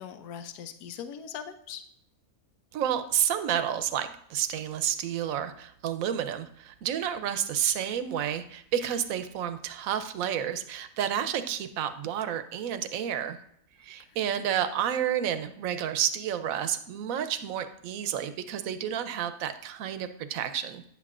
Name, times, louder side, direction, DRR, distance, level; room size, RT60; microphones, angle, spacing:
voice 1, 0.0-1.8 14.0-14.4, left 8 dB, 80° left, 8 dB, 1.1 m, -41 dB
voice 2, 2.7-13.4 13.8-20.9, right 9 dB, 70° right, 10 dB, 1.0 m, -30 dB
10.0 x 8.2 x 2.4 m, 0.71 s
omnidirectional pair, 1.6 m